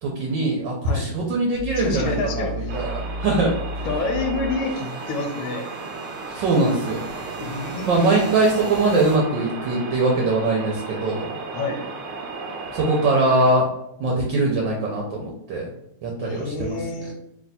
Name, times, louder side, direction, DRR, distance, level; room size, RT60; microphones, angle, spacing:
voice 1, 0.0-3.9 6.3-7.1 7.8-11.3 12.7-13.7 14.0-15.7 16.0-17.1, right 2 dB, 70° right, -2 dB, 1.3 m, -22 dB
sound 1, 1.5-9.2, equal, 45° right, 0.7 m, -35 dB
voice 2, 1.8-2.7 3.8-5.7 7.4-8.3 11.5-11.8 16.2-17.1, left 3 dB, 85° left, 3 dB, 1.5 m, -28 dB
sound 2, 2.7-13.5, right 3 dB, 90° right, 1.5 m, -35 dB
3.3 x 2.9 x 3.9 m, 0.83 s
omnidirectional pair, 2.3 m